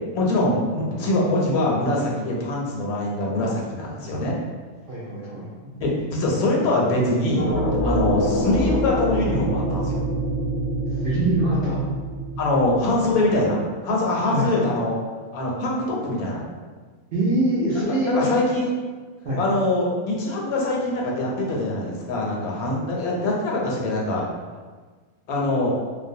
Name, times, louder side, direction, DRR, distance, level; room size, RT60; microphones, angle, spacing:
voice 1, 0.1-4.4 5.8-7.5 7.8-10.0 12.4-15.0 15.3-16.5 18.1-18.7 19.4-24.2 25.3-25.8, left 1 dB, 90° left, -2 dB, 1.1 m, -23 dB
voice 2, 4.9-5.5 10.9-11.8 14.3-14.4 17.1-18.3 19.2-19.4, right 1 dB, 65° right, -8 dB, 0.5 m, -23 dB
sound 1, 7.4-13.2, equal, 65° left, 0.6 m, -25 dB
2.5 x 2.0 x 2.6 m, 1.4 s
omnidirectional pair, 1.5 m